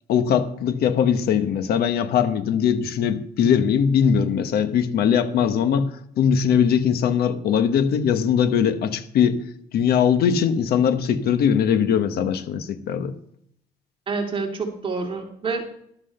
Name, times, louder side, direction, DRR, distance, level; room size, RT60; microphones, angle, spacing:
voice 1, 0.1-5.9 6.2-9.4 9.7-13.1, left 8 dB, 65° left, 1.2 m, -20 dB
voice 2, 14.1-15.6, right 4 dB, 30° right, 2.6 m, -27 dB
12.5 x 5.8 x 6.5 m
cardioid pair, 110°, 17 cm